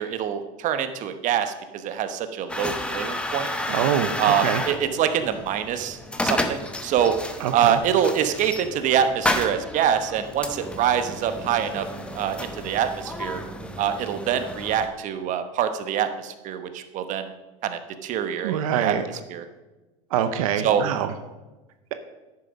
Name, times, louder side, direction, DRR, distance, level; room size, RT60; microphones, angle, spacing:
voice 1, 0.0-3.5 4.2-7.2 7.5-11.8 12.1-13.4 13.8-17.3 17.6-19.0 19.3-19.4 20.6-20.8, right 9 dB, 45° right, 9 dB, 1.0 m, -25 dB
sound 1, 2.5-14.9, left 1 dB, 5° left, 0.9 m, -31 dB
voice 2, 3.7-4.1 4.4-4.6 7.4-7.8 18.4-19.0 20.1-21.1, right 9 dB, 80° right, 9 dB, 0.7 m, -24 dB
10.0 x 6.8 x 5.2 m, 1.1 s
supercardioid pair, 110°, 18 cm